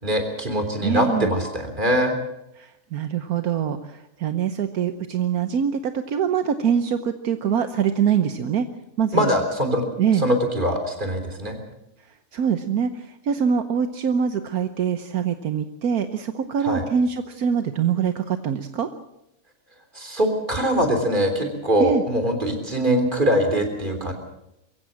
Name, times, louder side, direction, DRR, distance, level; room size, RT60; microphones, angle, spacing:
voice 1, 0.0-2.1 9.1-9.8 10.2-11.6 16.6-16.8 20.0-24.1, equal, 30° right, 5 dB, 3.6 m, -22 dB
voice 2, 0.8-1.3 2.6-8.7 9.0-9.3 10.0-10.3 12.3-18.9 21.8-22.0, right 7 dB, 75° right, 9 dB, 1.4 m, -24 dB
22.5 x 16.0 x 7.5 m, 0.85 s
omnidirectional pair, 1.6 m